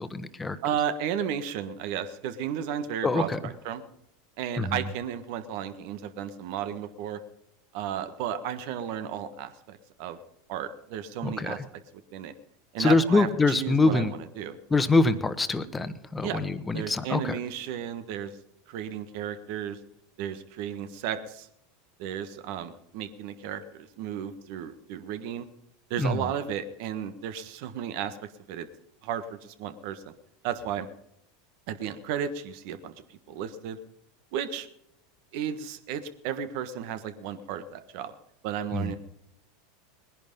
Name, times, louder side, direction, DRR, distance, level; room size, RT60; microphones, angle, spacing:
voice 1, 0.0-0.6 3.0-3.4 4.6-4.8 11.2-11.6 12.8-14.1 14.7-17.4 26.0-26.2 38.7-39.0, left 3 dB, 15° left, 11 dB, 1.2 m, -25 dB
voice 2, 0.6-3.8 4.4-7.2 7.7-10.2 10.5-11.6 12.1-12.3 12.7-14.6 16.2-16.4 16.7-18.4 18.7-19.8 20.2-21.5 22.0-25.5 25.9-28.2 28.5-28.7 29.0-30.1 30.4-30.9 31.7-33.8 34.3-34.7 35.3-38.1 38.4-39.0, right 9 dB, 60° right, 11 dB, 1.4 m, -33 dB
20.0 x 11.0 x 5.4 m, 0.79 s
hypercardioid pair, 95°, 0 cm